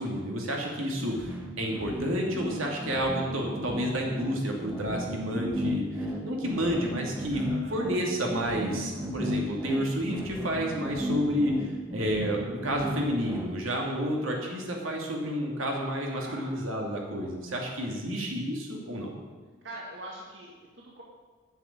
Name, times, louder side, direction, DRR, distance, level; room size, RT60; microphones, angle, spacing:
voice 1, 0.0-7.4 7.7-19.1, equal, 85° right, 0 dB, 2.6 m, -30 dB
sound 1, 0.9-13.5, equal, 10° right, 1.1 m, -34 dB
voice 2, 7.3-7.8 13.8-14.3 16.2-16.5 19.6-21.0, right 1 dB, 65° right, -3 dB, 1.9 m, -44 dB
9.7 x 7.2 x 8.8 m, 1.5 s
head